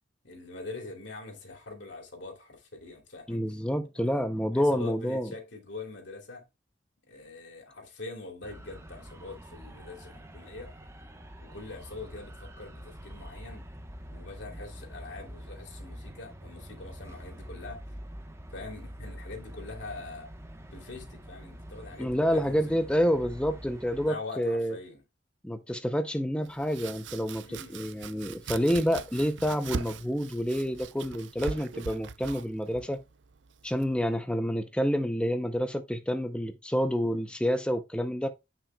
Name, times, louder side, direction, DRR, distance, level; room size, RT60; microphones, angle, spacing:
voice 1, 0.2-3.4 4.0-4.2 4.5-6.4 7.1-10.7 11.4-13.6 14.1-17.8 18.5-20.3 20.7-22.8 24.0-25.0 27.4-27.8, left 3 dB, 70° left, 2.8 m, -43 dB
voice 2, 3.3-5.3 22.0-24.8 25.4-33.0 33.6-38.3, equal, 5° left, 0.5 m, -28 dB
sound 1, 8.4-24.1, equal, 15° right, 1.0 m, -45 dB
Domestic sounds home sounds, 26.4-34.2, right 5 dB, 70° right, 0.5 m, -41 dB
9.8 x 5.8 x 2.2 m
head